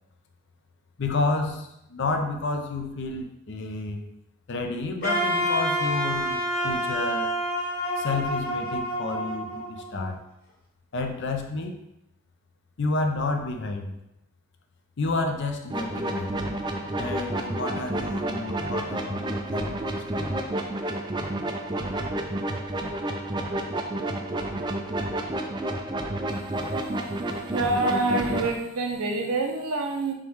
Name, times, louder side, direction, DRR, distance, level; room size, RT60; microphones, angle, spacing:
voice 1, 1.0-4.1 4.5-7.3 8.0-10.2 10.9-11.8 12.8-13.9 15.0-16.5 16.9-20.3, left 3 dB, 55° left, 5 dB, 0.5 m, -30 dB
Wind instrument woodwind instrument, 5.0-10.1, equal, 40° left, 1.6 m, -28 dB
sound 1, 15.7-28.5, right 1 dB, 20° right, 0.3 m, -30 dB
voice 2, 27.5-30.1, right 2 dB, 80° right, 2 dB, 0.8 m, -26 dB
3.7 x 3.1 x 4.6 m, 0.84 s
head